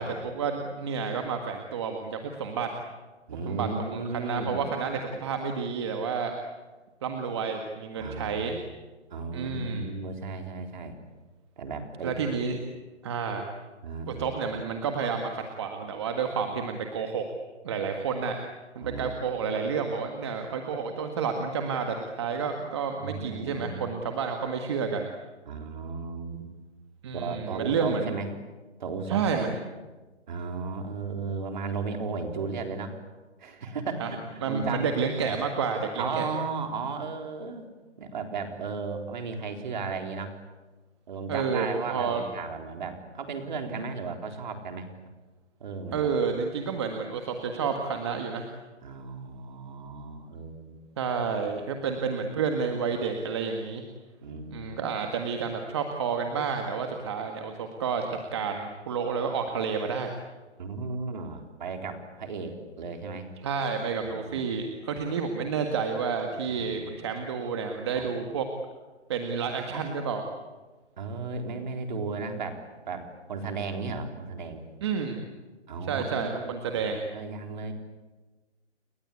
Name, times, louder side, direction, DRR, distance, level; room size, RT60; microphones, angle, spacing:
voice 1, 0.0-2.7 3.5-6.3 7.0-8.5 9.3-9.9 12.0-12.6 13.0-13.5 14.1-17.3 17.6-18.4 18.8-25.1 27.0-28.2 29.1-29.5 34.0-34.1 34.4-36.3 41.3-42.2 45.9-48.5 51.0-53.8 54.5-58.1 58.3-60.1 63.4-68.5 69.1-70.2 74.8-75.3 75.8-77.0, right 5 dB, 25° right, 4 dB, 1.7 m, -30 dB
voice 2, 3.3-4.6 8.0-8.6 9.1-11.0 11.6-12.3 13.8-14.4 18.8-19.1 23.0-23.9 25.5-26.4 27.1-28.3 28.8-29.5 30.3-33.0 33.4-34.9 35.3-35.4 36.0-37.7 38.0-40.3 41.1-44.9 45.6-46.1 48.8-50.8 51.5-51.6 54.2-54.9 60.6-63.3 64.0-64.4 66.5-67.0 67.9-68.1 71.0-74.6 75.7-77.7, right 4 dB, 40° right, 4 dB, 4.0 m, -35 dB
30.0 x 22.5 x 8.6 m, 1.3 s
hypercardioid pair, 175°, 36 cm